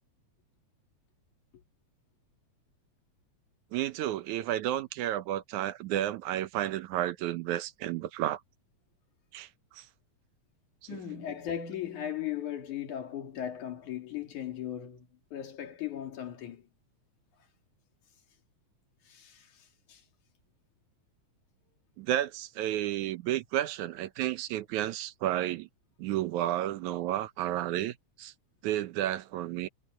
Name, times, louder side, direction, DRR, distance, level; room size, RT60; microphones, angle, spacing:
voice 1, 3.7-8.4 9.3-9.9 10.9-11.0 22.0-25.7 26.0-28.3 28.6-29.7, right 13 dB, 80° right, 2.3 m, -32 dB
voice 2, 10.9-15.1 15.3-16.6 19.1-19.5 19.9-20.0, left 10 dB, 80° left, 4.0 m, -37 dB
omnidirectional pair, 3.4 m